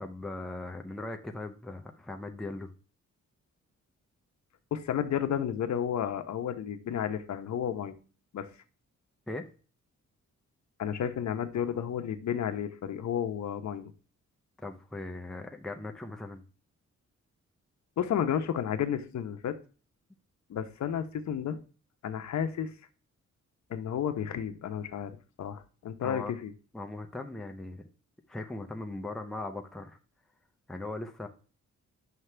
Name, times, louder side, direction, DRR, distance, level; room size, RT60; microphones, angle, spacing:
voice 1, 0.0-2.7 9.3-9.5 14.6-16.4 26.0-26.4 26.7-27.9 28.3-30.0 30.7-31.3, left 2 dB, ahead, 4 dB, 0.6 m, -39 dB
voice 2, 4.7-8.0 8.3-8.5 10.8-13.9 18.0-19.5 20.5-21.6 22.0-22.7 23.7-26.5, left 9 dB, 70° left, 8 dB, 0.9 m, -32 dB
9.3 x 5.9 x 3.3 m, 0.37 s
wide cardioid pair, 180°, 29 cm